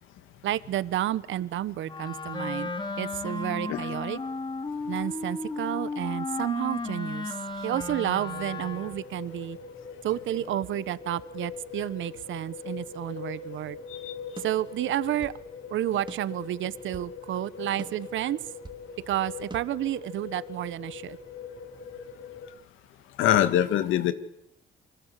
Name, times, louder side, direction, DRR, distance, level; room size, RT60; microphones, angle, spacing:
voice 1, 0.4-2.7 3.0-4.2 4.9-7.4 7.6-9.6 10.0-13.8 14.4-15.3 15.7-18.4 19.1-21.2, right 13 dB, 75° right, 16 dB, 1.2 m, -30 dB
Wind instrument woodwind instrument, 1.8-9.1, left 3 dB, 25° left, 4.8 m, -34 dB
sound 1, 8.3-22.5, left 6 dB, 50° left, 7.6 m, -42 dB
sound 2, 14.4-15.4 16.1-17.2 17.8-18.9 19.5-19.6, right 3 dB, 25° right, 3.2 m, -45 dB
voice 2, 23.2-24.1, left 11 dB, 90° left, 11 dB, 2.2 m, -22 dB
28.0 x 24.5 x 8.3 m, 0.80 s
cardioid pair, 90°, 20 cm